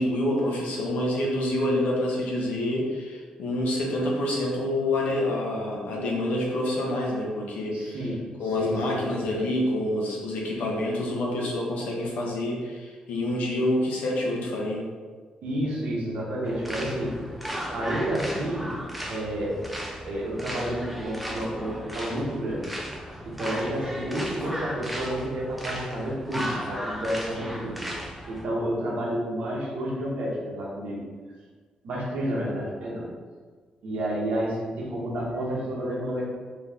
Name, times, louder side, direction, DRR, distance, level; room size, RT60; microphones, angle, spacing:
voice 1, 0.0-8.0 8.4-14.9, left 1 dB, 85° left, -2 dB, 0.9 m, -27 dB
voice 2, 7.7-8.2 8.6-9.4 15.4-17.1 17.7-18.7 19.1-19.6 20.0-22.7 23.2-27.8 28.3-31.1 31.8-33.1 33.8-36.3, right 1 dB, 70° right, -4 dB, 1.2 m, -30 dB
sound 1, 16.4-28.4, equal, 5° right, 0.4 m, -36 dB
4.1 x 2.9 x 3.6 m, 1.5 s
wide cardioid pair, 165°, 2 cm